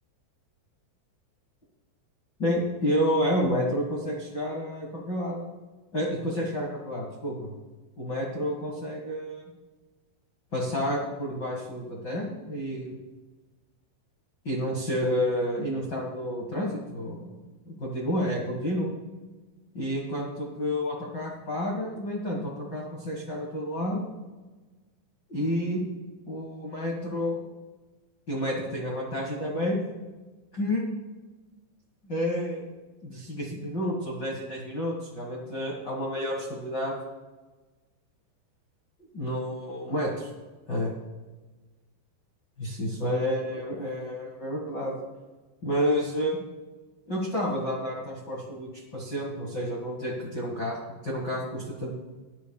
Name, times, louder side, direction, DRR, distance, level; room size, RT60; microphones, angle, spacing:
voice 1, 2.4-5.4 5.9-7.5 8.0-9.4 10.5-12.9 14.4-17.4 17.6-18.9 19.7-24.1 25.3-25.8 26.3-27.4 28.3-29.8 30.5-30.8 32.0-32.6 33.0-36.9 39.1-40.3 40.7-40.9 42.6-44.9 45.6-46.4 47.1-50.8 51.0-51.9, equal, 50° left, -4 dB, 1.2 m, -30 dB
18.5 x 10.5 x 2.3 m, 1.2 s
omnidirectional pair, 5.1 m